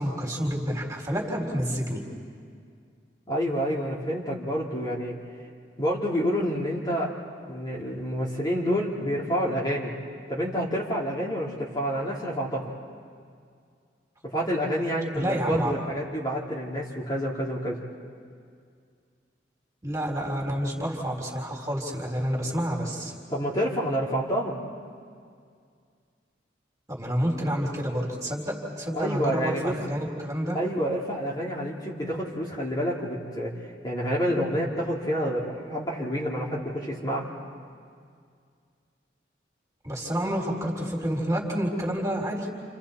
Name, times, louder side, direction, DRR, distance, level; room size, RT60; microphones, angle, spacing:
voice 1, 0.0-2.0 15.1-15.8 19.8-23.1 26.9-30.6 39.8-42.5, equal, 20° right, -1 dB, 3.8 m, -29 dB
voice 2, 3.3-5.2 5.8-7.1 7.5-9.9 10.3-12.7 14.2-17.8 23.3-24.6 28.9-29.8 30.5-33.5 33.8-37.3, equal, 25° left, -5 dB, 2.7 m, -28 dB
29.5 x 29.0 x 4.3 m, 2.2 s
head